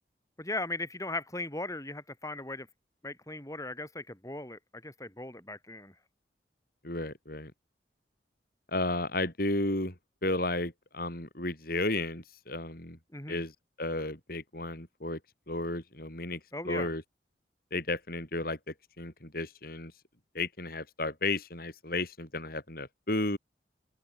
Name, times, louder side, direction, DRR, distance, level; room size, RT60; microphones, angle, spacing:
voice 1, 0.4-2.7 3.0-5.9 13.1-13.4 16.5-16.9, left 2 dB, 20° left, 6.9 m, -38 dB
voice 2, 6.8-7.5 8.7-9.9 10.2-13.0 13.3-13.5 13.8-15.2 15.5-16.4 16.6-17.0 17.7-18.6 19.0-19.9 20.3-23.4, left 2 dB, 55° left, 5.9 m, -33 dB
head